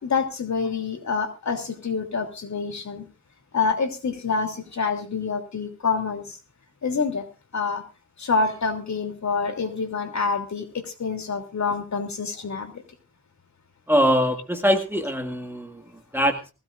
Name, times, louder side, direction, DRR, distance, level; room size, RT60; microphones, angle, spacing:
voice 1, 0.0-3.1 3.5-6.4 6.8-7.8 8.2-12.8, left 5 dB, 60° left, 5 dB, 3.0 m, -27 dB
voice 2, 13.9-15.8 16.1-16.4, equal, 5° right, 4 dB, 1.9 m, -22 dB
20.5 x 16.0 x 2.5 m, 0.30 s
wide cardioid pair, 150°, 32 cm